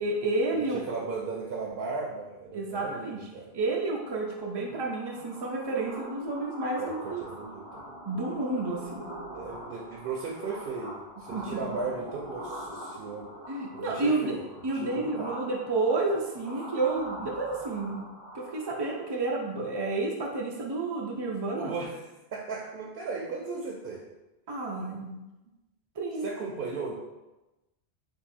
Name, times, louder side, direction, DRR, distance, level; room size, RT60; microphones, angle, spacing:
voice 1, 0.0-0.8 2.5-3.2 3.5-7.2 8.0-9.1 11.3-11.8 13.5-14.3 14.6-18.1 18.3-21.7 24.5-25.2 26.0-26.3, right 3 dB, 45° right, -2 dB, 0.3 m, -30 dB
voice 2, 0.5-3.5 6.8-8.0 9.3-13.3 13.7-14.4 14.7-15.3 21.5-22.0 22.3-24.0 26.2-26.9, right 4 dB, 70° right, -1 dB, 0.8 m, -36 dB
sound 1, 3.9-19.2, equal, 30° left, 1.1 m, -44 dB
3.6 x 2.6 x 4.1 m, 1.0 s
omnidirectional pair, 1.0 m